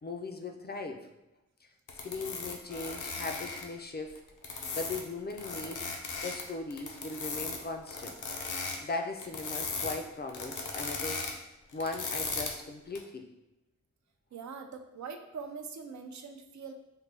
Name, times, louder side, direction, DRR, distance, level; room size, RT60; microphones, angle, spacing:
voice 1, 0.0-1.1 2.0-4.2 4.7-5.8 6.2-8.2 8.8-11.3 11.7-13.3, left 3 dB, 35° left, 4 dB, 0.4 m, -38 dB
sound 1, 1.9-3.6 4.2-5.0 5.3-6.4 6.7-7.6 7.9-8.8 9.2-10.0 10.3-11.3 11.7-12.5 13.0-13.1, left 4 dB, 80° left, 0.6 m, -37 dB
voice 2, 14.3-16.7, right 5 dB, 70° right, 5 dB, 0.5 m, -43 dB
3.9 x 2.1 x 3.3 m, 0.93 s
wide cardioid pair, 75°, 30 cm